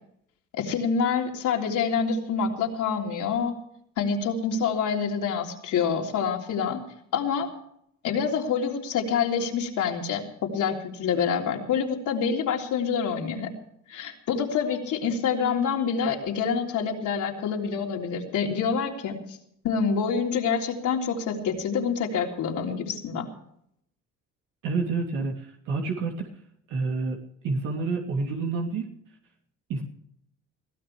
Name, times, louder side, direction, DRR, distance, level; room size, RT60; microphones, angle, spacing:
voice 1, 0.5-3.6 4.0-6.8 7.1-7.5 8.0-13.5 13.9-19.4 19.6-23.3, left 6 dB, 80° left, 1 dB, 3.5 m, -27 dB
voice 2, 24.6-26.1 26.7-27.2 27.4-28.9 29.7-29.8, right 4 dB, 90° right, 1 dB, 3.0 m, -28 dB
21.5 x 15.5 x 3.4 m, 0.70 s
cardioid pair, 90°, 30 cm